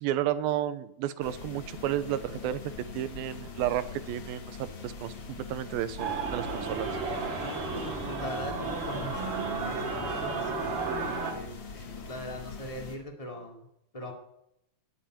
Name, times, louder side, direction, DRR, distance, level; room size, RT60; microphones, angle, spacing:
voice 1, 0.0-2.6 2.9-6.9, right 12 dB, 80° right, 14 dB, 2.5 m, -32 dB
sound 1, 1.2-13.0, left 5 dB, 40° left, 2.2 m, -43 dB
sound 2, 6.0-11.3, right 4 dB, 40° right, 2.7 m, -33 dB
voice 2, 7.3-10.6 11.2-13.7 13.9-14.1, equal, 10° left, 3 dB, 1.9 m, -41 dB
20.5 x 7.3 x 8.9 m, 0.81 s
omnidirectional pair, 4.5 m